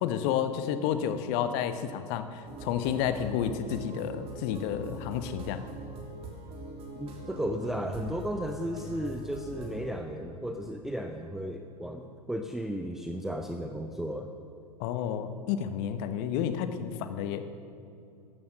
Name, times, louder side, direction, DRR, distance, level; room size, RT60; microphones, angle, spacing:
voice 1, 0.0-5.6 14.8-17.4, left 9 dB, 40° left, 10 dB, 1.1 m, -31 dB
sound 1, 2.5-9.8, right 2 dB, 30° right, 3.4 m, -43 dB
voice 2, 7.0-14.3, equal, ahead, 4 dB, 0.6 m, -34 dB
14.5 x 12.5 x 6.6 m, 2.6 s
figure-of-eight pair, 100°, 20 cm